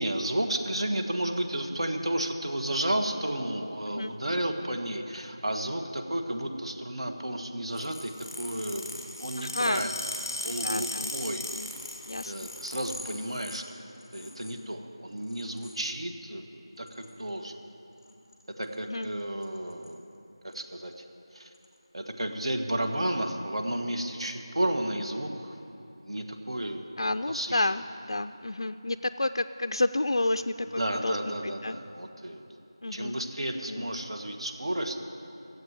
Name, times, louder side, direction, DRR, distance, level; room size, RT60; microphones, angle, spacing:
voice 1, 0.0-10.1 10.4-11.4 12.2-13.9 14.1-16.5 16.8-17.6 18.6-20.0 20.4-21.0 21.3-21.5 21.9-25.5 26.0-26.9 27.3-27.7 30.6-32.4 32.9-35.0, right 1 dB, 70° right, 4 dB, 1.3 m, -32 dB
sound 1, 7.7-13.6 14.0-14.6 15.3-15.8 16.9-17.1 18.1-18.3 18.6-18.7 19.0-19.1 19.4-19.9 20.5-20.6 21.5-21.6, left 2 dB, ahead, 0.5 m, -38 dB
voice 2, 9.4-9.9 10.6-11.1 11.5-11.7 12.1-12.3 18.9-19.1 27.0-31.3 31.6-31.8 32.8-33.2 33.7-33.9, left 2 dB, 60° left, 9 dB, 0.3 m, -30 dB
14.0 x 7.8 x 8.9 m, 2.8 s
figure-of-eight pair, 175°, 3 cm